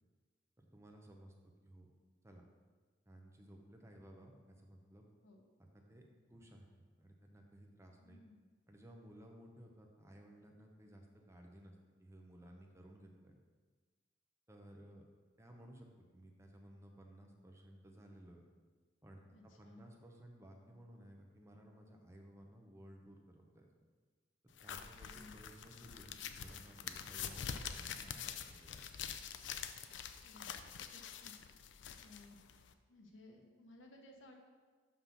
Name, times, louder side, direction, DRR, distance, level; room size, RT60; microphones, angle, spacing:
voice 1, 0.6-1.3 1.6-1.9 2.2-2.5 3.1-5.1 5.9-8.2 8.7-13.4 14.5-15.1 15.4-15.9 16.1-18.4 19.0-23.7 24.6-28.8, right 1 dB, 15° right, 1 dB, 0.8 m, -58 dB
voice 2, 8.0-8.3 19.3-19.8 25.1-25.4 30.2-30.5 30.9-31.3 32.0-32.4 32.9-34.3, left 2 dB, 80° left, 2 dB, 1.1 m, -59 dB
sound 1, 24.6-32.7, left 8 dB, 65° left, 0.4 m, -46 dB
5.7 x 5.7 x 5.9 m, 1.4 s
head